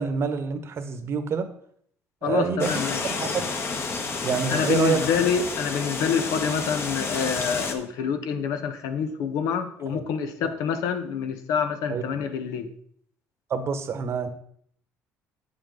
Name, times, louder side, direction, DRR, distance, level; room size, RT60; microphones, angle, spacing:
voice 1, 0.0-1.5 2.2-3.4 4.2-5.0 9.9-10.0 11.9-12.0 13.5-14.3, right 5 dB, 50° right, 9 dB, 1.1 m, -27 dB
voice 2, 2.2-3.2 4.5-12.7, left 6 dB, 80° left, 8 dB, 1.0 m, -27 dB
sound 1, 2.6-7.7, left 4 dB, 45° left, 1.3 m, -30 dB
8.3 x 7.8 x 3.9 m, 0.63 s
cardioid pair, 95°, 6 cm